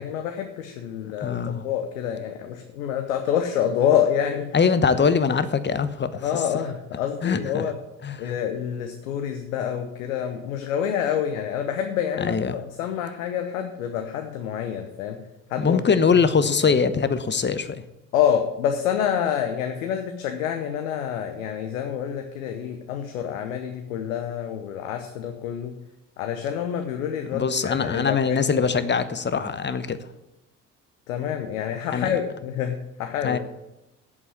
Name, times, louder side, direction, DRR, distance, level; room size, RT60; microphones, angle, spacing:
voice 1, 0.0-4.5 6.2-7.8 8.2-15.2 15.5-16.0 16.7-16.8 18.1-25.7 26.2-28.7 31.1-33.4, left 9 dB, 80° left, 5 dB, 1.0 m, -27 dB
voice 2, 1.2-1.6 4.5-6.2 7.2-7.6 8.0-8.3 12.2-12.6 15.6-17.8 27.3-30.0 31.9-32.1 33.2-33.4, left 5 dB, 25° left, 13 dB, 1.0 m, -22 dB
8.3 x 7.3 x 8.5 m, 0.94 s
figure-of-eight pair, 50°, 41 cm